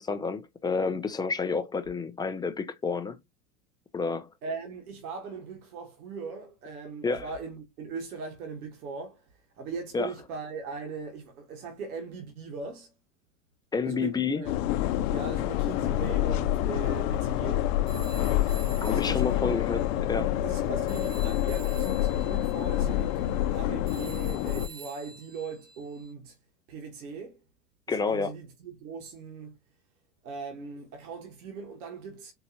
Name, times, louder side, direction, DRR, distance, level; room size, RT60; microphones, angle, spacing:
voice 1, 0.0-3.2 3.9-4.3 7.0-7.3 9.9-10.1 13.7-14.4 18.8-19.8 20.1-20.4 27.9-28.3, left 4 dB, 10° left, 0.3 m, -29 dB
voice 2, 4.4-9.2 9.6-12.9 13.8-14.5 15.1-17.7 18.8-19.6 20.4-26.4 26.7-27.4 27.9-29.6 30.2-32.3, right 4 dB, 80° right, 1.4 m, -40 dB
sound 1, 14.4-24.7, left 12 dB, 65° left, 0.6 m, -27 dB
Telephone, 17.9-20.6 20.9-26.1, right 6 dB, 55° right, 1.1 m, -49 dB
4.6 x 2.6 x 2.8 m
hypercardioid pair, 100°, 43 cm